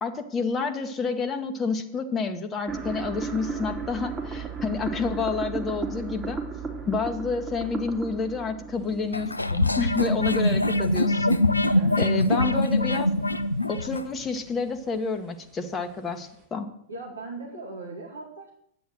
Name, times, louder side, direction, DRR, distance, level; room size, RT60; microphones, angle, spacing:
voice 1, 0.0-6.4 6.9-11.4 11.7-13.1 13.7-16.7, left 4 dB, 20° left, 6 dB, 1.2 m, -29 dB
sound 1, 2.7-9.7, right 5 dB, 20° right, 2.8 m, -35 dB
sound 2, 8.7-16.4, right 7 dB, 40° right, 3.2 m, -47 dB
sound 3, 9.1-14.1, left 2 dB, 85° left, 0.5 m, -23 dB
voice 2, 16.9-18.5, right 3 dB, 75° right, 0 dB, 2.3 m, -38 dB
10.5 x 9.3 x 6.3 m, 0.71 s
figure-of-eight pair, 90°, 0 cm